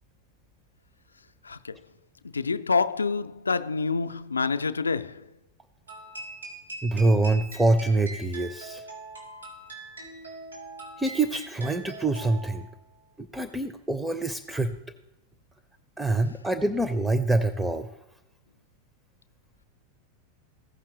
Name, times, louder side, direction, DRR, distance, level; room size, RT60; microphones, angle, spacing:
voice 1, 1.4-1.8 2.3-5.3, left 4 dB, 75° left, 0.4 m, -27 dB
sound 1, 5.9-12.7, right 2 dB, 90° right, 3.5 m, -42 dB
voice 2, 6.8-8.8 11.0-12.7 13.2-14.7 16.0-17.9, right 2 dB, 5° right, 0.5 m, -25 dB
16.0 x 5.7 x 3.1 m
figure-of-eight pair, 90°, 0 cm